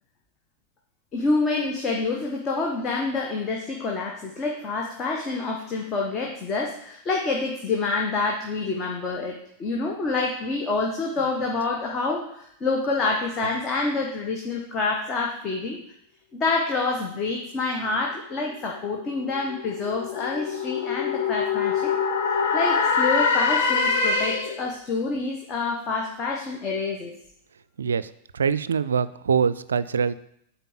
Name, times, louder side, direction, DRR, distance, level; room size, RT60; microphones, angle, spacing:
voice 1, 1.1-15.8 16.3-21.9 22.5-27.1, left 3 dB, 30° left, 0 dB, 1.3 m, -27 dB
sound 1, 18.5-24.7, left 5 dB, 55° left, 1.2 m, -24 dB
voice 2, 27.8-28.1 28.3-30.1, right 6 dB, 70° right, 16 dB, 0.4 m, -23 dB
8.9 x 4.3 x 7.2 m, 0.72 s
figure-of-eight pair, 90°, 0 cm